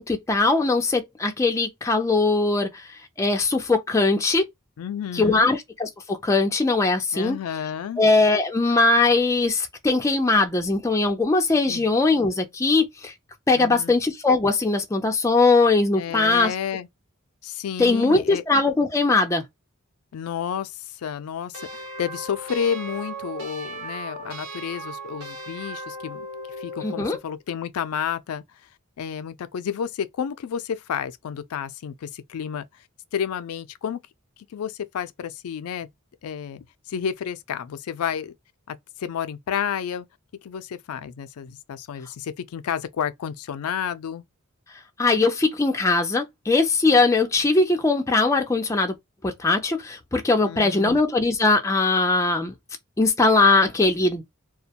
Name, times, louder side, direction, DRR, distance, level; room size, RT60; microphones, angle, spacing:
voice 1, 0.0-2.8 3.2-4.5 5.1-7.4 8.0-13.1 13.5-16.5 17.8-19.4 26.8-27.2 45.0-48.9 49.2-52.5 53.0-54.2, left 3 dB, 15° left, 0.4 m, -20 dB
voice 2, 4.8-5.5 7.1-8.0 11.7-11.8 13.5-13.9 16.0-16.9 17.4-18.4 20.1-26.3 26.6-28.4 29.0-32.7 33.1-34.0 34.5-35.9 36.2-38.3 38.7-40.1 40.4-44.2 50.4-51.0, left 8 dB, 85° left, 0.4 m, -31 dB
sound 1, 21.5-27.3, right 1 dB, 80° right, 1.1 m, -37 dB
2.3 x 2.1 x 2.7 m
head